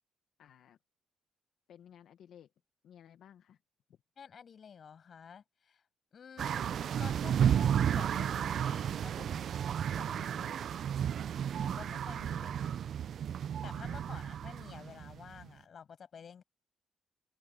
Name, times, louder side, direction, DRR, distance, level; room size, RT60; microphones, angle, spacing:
voice 1, 0.4-0.8 1.7-2.5 2.8-3.6 3.9-4.0 13.9-14.2, left 9 dB, 70° left, 1.1 m, -57 dB
voice 2, 4.2-5.8 6.1-9.7 10.0-10.5 11.6-12.7 13.6-16.4, left 7 dB, 50° left, 6.7 m, -51 dB
sound 1, 6.4-15.5, right 9 dB, 60° right, 0.3 m, -33 dB
cardioid pair, 90°, 0 cm